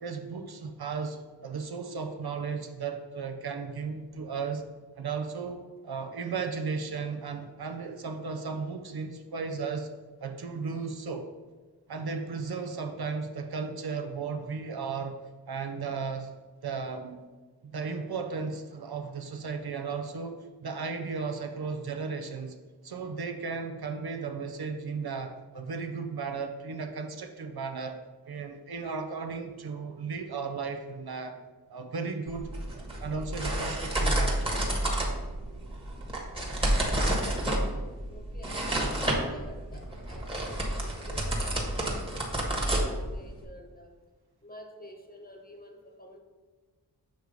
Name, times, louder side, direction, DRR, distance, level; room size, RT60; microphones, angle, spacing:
voice 1, 0.0-4.7 5.0-9.9 10.2-11.3 11.9-15.1 15.5-16.3 16.6-17.2 17.6-22.6 22.8-28.0 28.3-31.4 31.7-34.4, right 5 dB, 60° right, 6 dB, 0.6 m, -35 dB
sound 1, 32.3-43.4, right 1 dB, 15° right, 1.3 m, -30 dB
voice 2, 38.1-43.9 44.4-46.2, equal, 20° left, 2 dB, 0.9 m, -50 dB
6.4 x 3.1 x 5.1 m, 1.3 s
wide cardioid pair, 55°, 42 cm